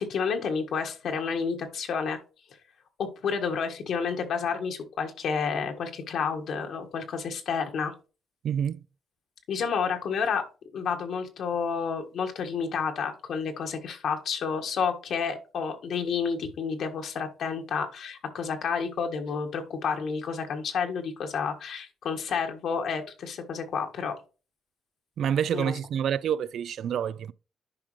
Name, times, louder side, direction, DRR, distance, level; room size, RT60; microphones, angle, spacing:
voice 1, 0.0-2.2 3.0-7.9 9.5-10.4 10.7-24.1 25.5-25.7, left 6 dB, 70° left, 1.6 m, -30 dB
voice 2, 8.4-8.8 25.2-27.3, right 8 dB, 65° right, 0.3 m, -28 dB
10.5 x 5.0 x 3.2 m
cardioid pair, 90°, 0 cm